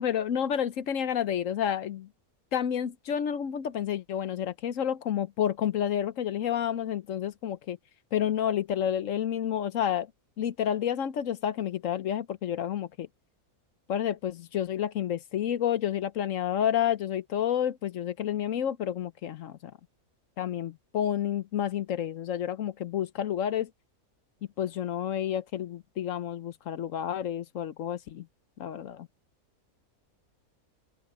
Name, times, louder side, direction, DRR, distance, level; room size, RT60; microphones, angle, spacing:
voice 1, 0.0-2.1 2.5-7.8 8.1-10.1 10.4-13.1 13.9-19.7 20.4-23.7 24.6-28.3 28.6-29.1, left 9 dB, 65° left, 1.1 m, -30 dB
open air
omnidirectional pair, 1.5 m